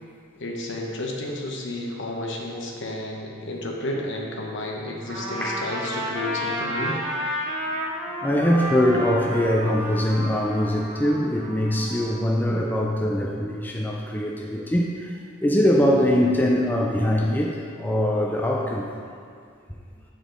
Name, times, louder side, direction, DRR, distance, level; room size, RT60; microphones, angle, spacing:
voice 1, 0.4-7.0, left 1 dB, 60° left, 0 dB, 0.9 m, -31 dB
Trumpet, 5.1-12.2, equal, 35° right, 1.8 m, -31 dB
voice 2, 8.2-18.9, equal, 10° left, -2 dB, 0.4 m, -22 dB
8.3 x 5.0 x 3.8 m, 2.2 s
head